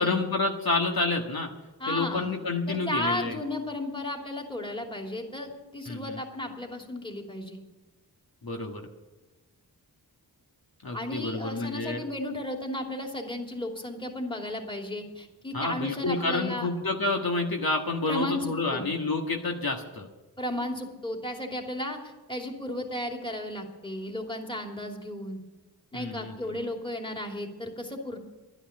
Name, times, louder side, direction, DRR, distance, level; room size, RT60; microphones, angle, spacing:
voice 1, 0.0-1.5 1.9-3.4 5.8-6.2 8.4-8.8 10.8-12.0 15.5-20.1 25.9-26.3, left 3 dB, 60° left, 2 dB, 1.6 m, -29 dB
voice 2, 1.8-2.3 2.7-7.6 10.9-16.7 18.1-18.9 20.4-25.4 25.9-28.2, left 1 dB, 10° left, 1 dB, 2.9 m, -34 dB
12.0 x 9.9 x 8.7 m, 1.1 s
cardioid pair, 50°, 41 cm